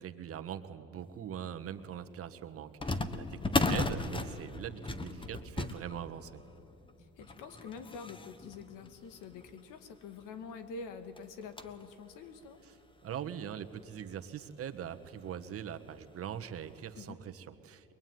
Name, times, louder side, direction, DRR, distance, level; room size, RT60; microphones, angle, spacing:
voice 1, 0.0-6.4 12.6-12.7 13.0-17.9, right 9 dB, 45° right, 8 dB, 1.5 m, -42 dB
sound 1, 1.4-1.5 2.8-9.7 10.3-10.4 10.6-10.8 11.2-11.9 12.4-12.5 13.3-13.4 13.8-13.9 15.3-15.6 16.0-16.1 16.7-16.9, left 3 dB, 15° left, 1.3 m, -36 dB
voice 2, 7.2-12.6 17.0-17.2, left 5 dB, 75° left, 9 dB, 2.2 m, -46 dB
22.5 x 22.0 x 9.5 m, 2.9 s
cardioid pair, 105°, 31 cm